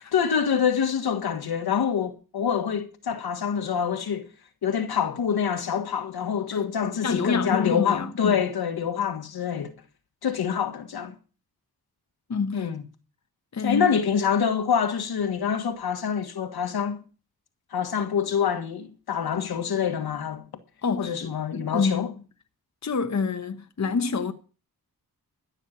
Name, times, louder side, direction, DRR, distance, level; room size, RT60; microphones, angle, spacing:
voice 1, 0.1-4.3 4.6-9.7 10.2-11.1 12.5-12.8 13.6-17.0 17.7-20.4 21.0-22.1, left 7 dB, 80° left, 1.6 m, -26 dB
voice 2, 7.0-8.4 12.3-12.7 13.5-13.9 20.8-22.1 22.8-24.3, left 5 dB, 50° left, 1.2 m, -27 dB
14.0 x 6.7 x 8.2 m
cardioid pair, 60°, 37 cm